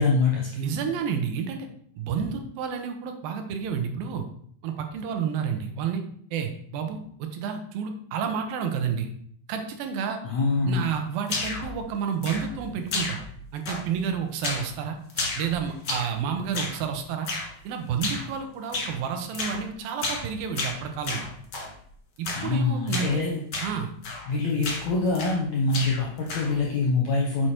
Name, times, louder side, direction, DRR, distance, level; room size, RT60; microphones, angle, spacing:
voice 1, 0.0-0.6 10.2-10.9 22.3-23.4 24.3-27.5, left 3 dB, 75° left, -1 dB, 1.6 m, -24 dB
voice 2, 0.6-1.7 2.0-4.3 4.6-6.0 6.3-9.1 9.5-10.2 10.7-13.2 13.5-15.0 15.4-17.3 17.6-21.3 22.2-23.2 23.6-23.9, right 7 dB, 75° right, 5 dB, 2.5 m, -30 dB
sound 1, 11.3-11.7 12.2-12.6 12.9-13.4 13.7-14.0 14.4-14.7 15.1-16.2 16.5-16.8 17.3-17.5 18.0-18.3 18.7-19.0 19.3-19.6 20.0-20.3 20.6-21.7 22.2-22.5 22.9-23.1 23.5-23.7 24.0-24.3 24.6-25.4 25.7-26.6, left 3 dB, 60° left, 1.1 m, -32 dB
7.5 x 4.8 x 4.4 m, 0.63 s
omnidirectional pair, 4.3 m